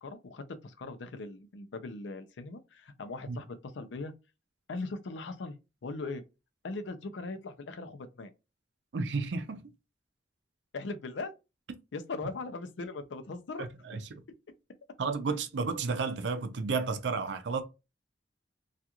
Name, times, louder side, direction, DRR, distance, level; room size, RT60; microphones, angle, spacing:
voice 1, 0.0-4.1 4.7-5.6 5.8-6.2 6.6-8.3 10.7-11.3 11.9-13.7, left 3 dB, 85° left, 0.5 m, -39 dB
voice 2, 8.9-9.7 13.6-14.2 15.0-17.6, right 4 dB, 70° right, 0.5 m, -32 dB
2.8 x 2.4 x 2.3 m
head